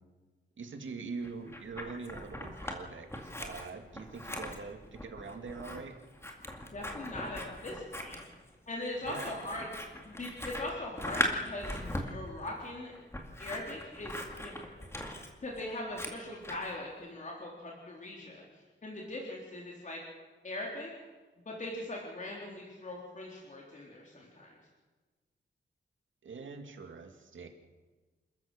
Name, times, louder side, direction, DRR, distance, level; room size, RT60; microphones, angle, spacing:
voice 1, 0.6-6.0 9.0-9.4 26.2-27.5, right 4 dB, 80° right, 5 dB, 2.5 m, -43 dB
Scissors, 1.2-2.8 3.1-16.7, left 1 dB, 15° left, 2.3 m, -40 dB
voice 2, 6.7-8.2 8.7-9.7 10.0-12.9 13.4-14.7 15.4-20.0 20.4-20.9 21.5-24.5, left 1 dB, 40° left, -2 dB, 3.6 m, -41 dB
28.0 x 14.0 x 6.8 m, 1.3 s
wide cardioid pair, 170°, 20 cm